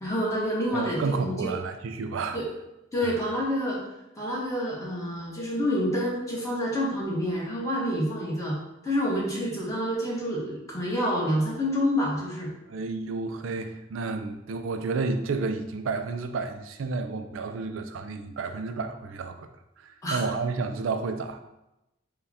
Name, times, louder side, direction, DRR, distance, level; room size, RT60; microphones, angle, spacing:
voice 1, 0.0-1.5 2.3-2.4 2.9-3.8 4.2-8.6 8.8-12.5 20.0-20.2, equal, 15° left, -5 dB, 1.3 m, -28 dB
voice 2, 0.7-2.4 3.0-3.2 12.7-19.5 19.8-21.4, right 4 dB, 90° right, 7 dB, 0.4 m, -31 dB
5.4 x 2.3 x 4.1 m, 0.92 s
head